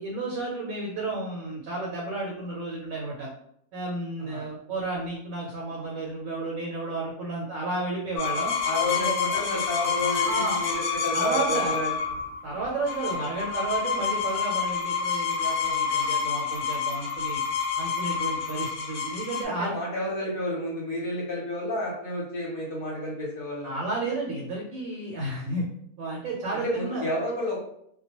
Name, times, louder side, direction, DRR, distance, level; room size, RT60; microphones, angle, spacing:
voice 1, 0.0-3.3 3.7-8.5 8.9-9.4 10.2-10.6 11.1-11.8 12.4-17.4 17.8-19.8 23.6-25.6 26.0-27.1, right 2 dB, 75° right, -3 dB, 1.0 m, -32 dB
sound 1, 8.2-19.4, left 6 dB, 85° left, 1.0 m, -28 dB
voice 2, 8.6-11.9 19.4-23.7 26.5-27.6, left 1 dB, 50° left, -4 dB, 0.8 m, -31 dB
2.2 x 2.1 x 2.8 m, 0.71 s
omnidirectional pair, 1.5 m